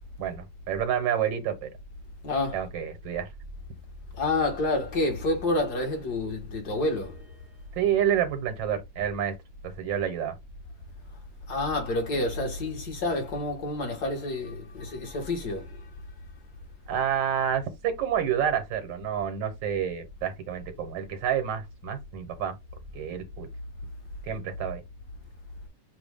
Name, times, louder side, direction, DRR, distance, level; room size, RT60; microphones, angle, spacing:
voice 1, 0.2-1.7 2.5-3.3 7.8-9.3 9.6-10.3 16.9-22.5 22.9-23.5 24.2-24.8, right 9 dB, 80° right, 1.7 m, -29 dB
voice 2, 2.2-2.7 4.2-7.2 11.5-15.7, left 2 dB, 60° left, 1.9 m, -28 dB
6.8 x 2.3 x 3.4 m
omnidirectional pair, 1.9 m